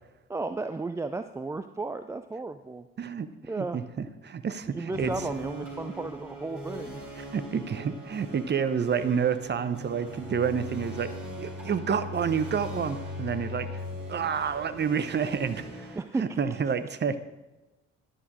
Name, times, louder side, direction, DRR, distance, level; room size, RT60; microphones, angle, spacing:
voice 1, 0.3-2.9 3.5-3.8 4.7-7.0 15.9-16.4, right 3 dB, 10° right, 9 dB, 0.3 m, -34 dB
voice 2, 3.0-3.3 3.5-5.1 7.3-11.1 11.4-13.8 14.1-17.2, right 7 dB, 30° right, 11 dB, 0.8 m, -29 dB
sound 1, 4.9-15.9, left 1 dB, 85° right, 2.2 m, -40 dB
15.0 x 11.0 x 2.6 m, 1.1 s
figure-of-eight pair, 45°, 35 cm